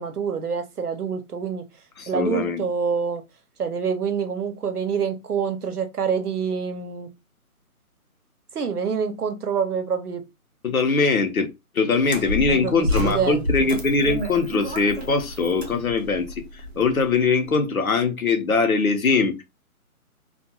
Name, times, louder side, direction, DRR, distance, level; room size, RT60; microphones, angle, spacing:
voice 1, 0.0-1.6 2.1-3.2 3.6-7.1 8.5-10.2 12.5-13.7, right 6 dB, 85° right, 0.9 m, -26 dB
voice 2, 2.0-2.6 10.6-11.5 11.7-19.4, left 4 dB, 65° left, 0.9 m, -22 dB
sound 1, 12.0-17.3, left 1 dB, 45° right, 0.6 m, -30 dB
2.5 x 2.3 x 2.7 m
hypercardioid pair, 180°, 45 cm